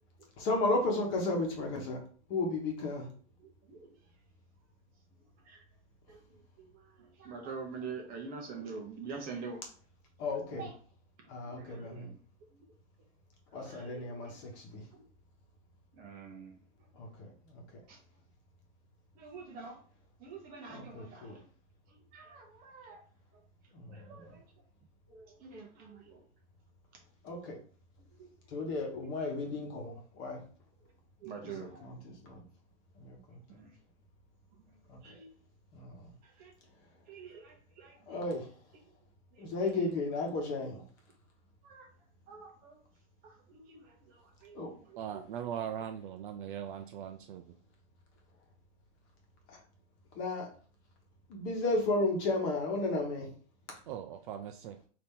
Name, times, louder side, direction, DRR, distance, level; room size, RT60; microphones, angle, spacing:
voice 1, 0.4-2.0 2.3-3.1 10.2-10.7 11.3-12.1 13.5-14.8 16.9-17.6 20.7-21.3 23.7-24.3 27.2-27.6 28.5-30.4 31.4-31.5 31.8-32.4 33.0-33.4 34.9-35.0 35.7-36.1 38.1-38.5 39.4-40.8 44.5-44.7 49.5-49.6 50.1-50.5 51.3-53.3, left 2 dB, 35° left, 1 dB, 1.2 m, -34 dB
voice 2, 3.4-4.0 5.2-5.6 6.1-9.6 10.2-10.7 11.2-12.1 12.5-12.7 13.5-14.5 14.9-15.0 15.9-17.0 17.9-18.0 19.1-19.8 20.2-21.5 21.9-23.0 23.3-23.4 23.9-24.5 25.1-26.2 28.1-28.3 30.8-30.9 31.2-32.0 33.5-33.8 34.5-35.3 36.2-36.5 37.1-38.1 38.7-38.8 39.3-39.8 41.6-41.9 42.3-42.8 43.2-45.3, right 5 dB, 25° right, 2 dB, 0.8 m, -47 dB
voice 3, 45.0-47.6 53.9-54.8, right 9 dB, 45° right, 6 dB, 0.4 m, -40 dB
4.1 x 2.8 x 3.6 m, 0.42 s
supercardioid pair, 155°, 35 cm